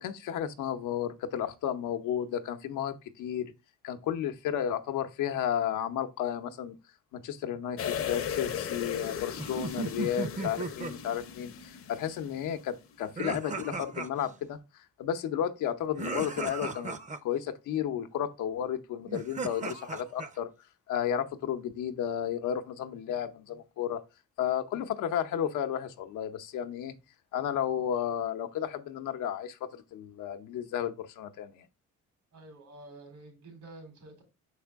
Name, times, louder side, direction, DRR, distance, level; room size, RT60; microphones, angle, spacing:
voice 1, 0.0-3.5 3.8-6.7 7.1-17.0 17.2-20.5 20.9-24.0 24.4-26.9 27.3-31.6, left 9 dB, 85° left, 0.8 m, -33 dB
sound 1, 7.8-12.6 12.9-13.0, left 8 dB, 50° left, 0.7 m, -37 dB
sound 2, 9.4-10.9 13.2-14.3 15.9-17.2 19.1-20.3, right 3 dB, 25° right, 0.6 m, -36 dB
voice 2, 32.3-34.2, right 2 dB, 80° right, 3.3 m, -49 dB
5.8 x 4.9 x 3.5 m
cardioid pair, 90°, 30 cm